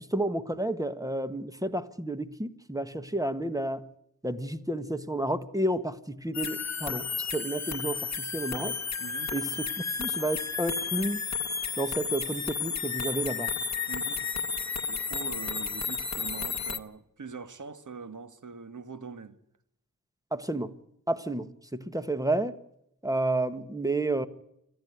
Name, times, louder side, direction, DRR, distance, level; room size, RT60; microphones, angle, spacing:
voice 1, 0.0-3.9 4.2-8.8 9.3-9.7 10.0-11.2 11.8-13.5 20.3-20.7 21.1-22.5 23.0-24.3, right 1 dB, 10° right, 1.6 m, -31 dB
sound 1, 6.3-16.8, left 5 dB, 50° left, 1.4 m, -32 dB
voice 2, 9.0-9.3 13.9-14.3 14.9-19.4, right 5 dB, 60° right, 1.8 m, -43 dB
27.5 x 11.0 x 9.4 m
wide cardioid pair, 70°, 35 cm